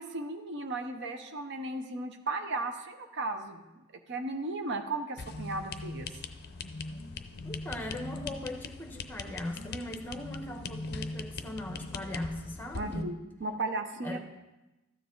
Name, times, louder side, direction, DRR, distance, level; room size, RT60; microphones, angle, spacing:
voice 1, 0.0-6.1 12.7-13.1 13.4-14.2, right 2 dB, 55° right, 7 dB, 0.7 m, -35 dB
sound 1, 5.2-13.0, left 3 dB, 50° left, 0.5 m, -40 dB
voice 2, 7.4-13.1 14.0-14.2, left 1 dB, 10° left, 2 dB, 1.0 m, -39 dB
13.0 x 7.2 x 3.8 m, 1.0 s
head